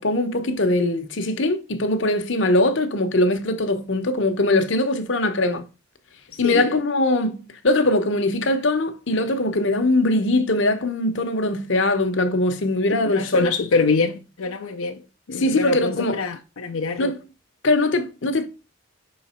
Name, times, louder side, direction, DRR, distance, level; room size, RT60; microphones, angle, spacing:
voice 1, 0.0-5.6 6.4-7.4 7.6-13.5 15.3-16.2 17.0-17.2 17.6-18.5, left 2 dB, 60° left, 0.8 m, -21 dB
voice 2, 6.3-6.7 12.9-15.0 15.3-17.1, left 4 dB, 85° left, 0.6 m, -24 dB
5.8 x 4.0 x 4.2 m
head